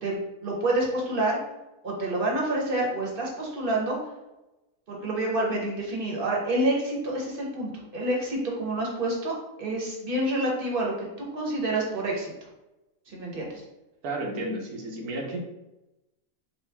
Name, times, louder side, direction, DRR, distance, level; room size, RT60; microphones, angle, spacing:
voice 1, 0.0-1.4 1.8-4.0 4.9-12.3 13.1-13.6, right 1 dB, 40° right, -2 dB, 1.0 m, -28 dB
voice 2, 14.0-15.4, right 1 dB, 85° right, 0 dB, 1.3 m, -32 dB
4.6 x 2.5 x 3.4 m, 0.98 s
omnidirectional pair, 1.6 m